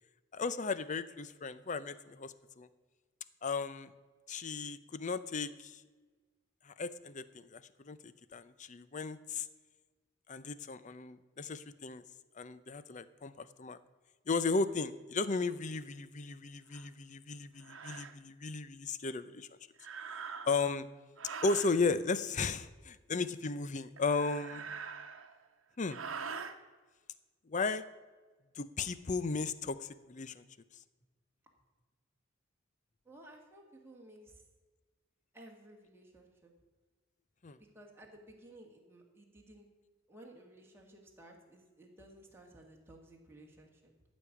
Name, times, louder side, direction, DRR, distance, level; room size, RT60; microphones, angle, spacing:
voice 1, 0.3-2.7 3.4-3.9 4.3-5.8 6.6-9.5 10.3-12.0 12.4-13.8 14.3-19.5 20.5-20.9 21.4-24.7 25.8-26.0 27.5-27.8 28.5-30.4 37.4-37.6, left 4 dB, 35° left, 14 dB, 0.6 m, -35 dB
sound 1, 16.7-16.9 17.6-18.1 19.8-20.7 21.2-21.8 24.0-25.4 25.8-26.5, right 5 dB, 75° right, 1.0 m, -44 dB
voice 2, 33.0-34.4 35.3-36.5 37.6-39.7 40.1-43.9, right 1 dB, 10° right, 0 dB, 2.0 m, -56 dB
13.5 x 5.4 x 8.5 m, 1.3 s
head